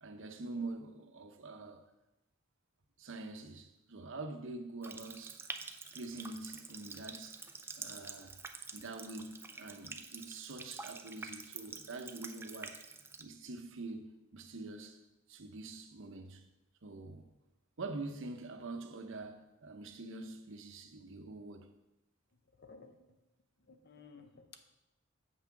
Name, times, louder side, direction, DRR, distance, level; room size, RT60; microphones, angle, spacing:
voice 1, 0.0-1.8 3.0-5.4 5.9-7.4 7.8-8.4 8.7-12.8 13.2-15.0 15.3-16.4 16.8-17.3 17.8-21.7, right 3 dB, 60° right, 0.8 m, -45 dB
Water tap faucet, 4.8-13.2, right 4 dB, 10° right, 0.4 m, -47 dB
voice 2, 22.5-23.1 23.6-24.6, left 4 dB, 50° left, 0.8 m, -56 dB
7.5 x 6.0 x 5.8 m
head